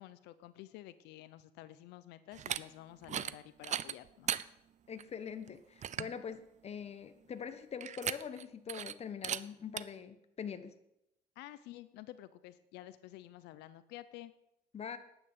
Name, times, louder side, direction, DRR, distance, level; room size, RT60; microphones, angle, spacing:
voice 1, 0.0-4.4 11.4-14.3, left 14 dB, 90° left, 14 dB, 0.7 m, -51 dB
sound 1, 2.3-2.6 3.0-3.3 3.6-4.4 5.0-5.1 5.5-5.6 5.8-6.1 7.8-8.4 8.7-8.9 9.2-9.4 9.8-9.9, right 10 dB, 45° right, 0.6 m, -36 dB
voice 2, 4.9-10.7 14.7-15.0, left 7 dB, 40° left, 10 dB, 1.3 m, -43 dB
11.0 x 9.0 x 8.0 m, 0.83 s
cardioid pair, 110°, 17 cm